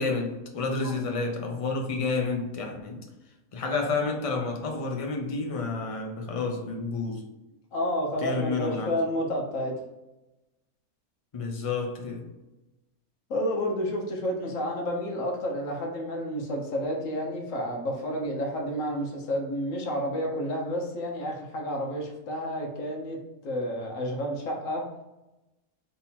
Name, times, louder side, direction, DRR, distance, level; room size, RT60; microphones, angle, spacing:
voice 1, 0.0-3.1 3.5-7.3 8.2-9.0 11.3-12.3, left 3 dB, 40° left, 2 dB, 0.4 m, -30 dB
voice 2, 7.7-9.7 13.3-23.2 23.4-24.8, equal, 65° left, 0 dB, 1.3 m, -30 dB
3.7 x 2.9 x 4.1 m, 1.0 s
omnidirectional pair, 1.5 m